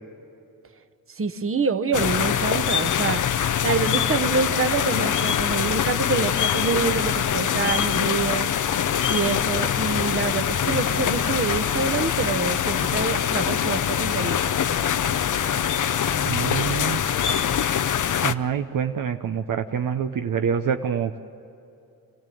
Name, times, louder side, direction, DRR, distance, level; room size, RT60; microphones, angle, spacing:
voice 1, 1.1-3.2 3.6-8.5 9.1-14.5, right 4 dB, 35° right, 10 dB, 1.1 m, -26 dB
sound 1, 1.9-18.3, left 9 dB, 55° left, 0.7 m, -24 dB
voice 2, 16.2-17.0 18.2-21.2, right 7 dB, 60° right, 6 dB, 0.8 m, -26 dB
26.0 x 15.5 x 7.8 m, 2.8 s
cardioid pair, 75°, 36 cm